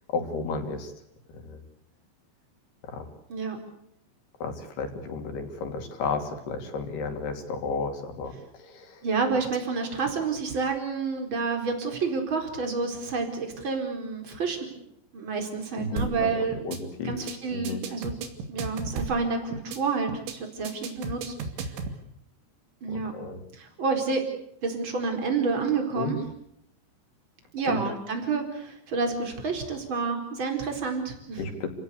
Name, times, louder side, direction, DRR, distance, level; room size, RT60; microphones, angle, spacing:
voice 1, 0.1-0.9 1.3-1.6 2.8-3.1 4.4-9.0 15.8-17.1 17.5-17.8 22.9-23.4 26.0-26.1 27.7-27.8 31.4-31.7, left 4 dB, 65° left, 6 dB, 4.9 m, -33 dB
voice 2, 9.0-14.6 15.1-16.7 17.0-18.1 18.5-21.3 22.8-23.1 23.5-24.2 24.6-26.2 27.5-31.5, right 4 dB, 25° right, 4 dB, 4.8 m, -29 dB
sound 1, 16.0-16.2 16.5-16.8 17.1-17.3 17.6-19.2 19.5-19.8 20.1-20.3 20.6-22.0, right 5 dB, 80° right, 4.7 m, -34 dB
29.5 x 17.5 x 8.3 m, 0.74 s
omnidirectional pair, 5.2 m